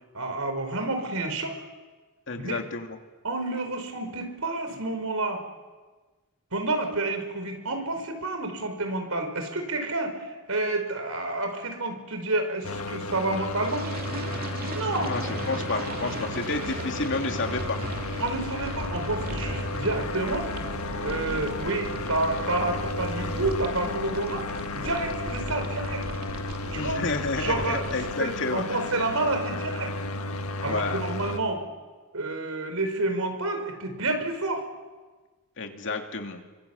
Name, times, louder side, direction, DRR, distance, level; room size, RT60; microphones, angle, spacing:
voice 1, 0.1-1.6 2.4-2.6 3.2-5.4 6.5-13.9 14.7-15.1 15.7-15.8 18.2-20.5 21.0-24.5 24.8-26.1 26.7-27.0 27.4-27.9 28.2-29.9 30.6-31.6 32.1-34.6, right 2 dB, 80° right, 6 dB, 5.2 m, -29 dB
voice 2, 2.3-2.9 15.0-17.8 21.1-21.4 26.8-28.8 30.7-31.0 35.6-36.4, left 3 dB, 60° left, 4 dB, 2.7 m, -30 dB
sound 1, 12.6-31.4, left 2 dB, 85° left, 1.7 m, -33 dB
sound 2, 13.6-28.1, right 1 dB, 45° right, 2.6 m, -38 dB
28.5 x 24.5 x 8.4 m, 1.3 s
head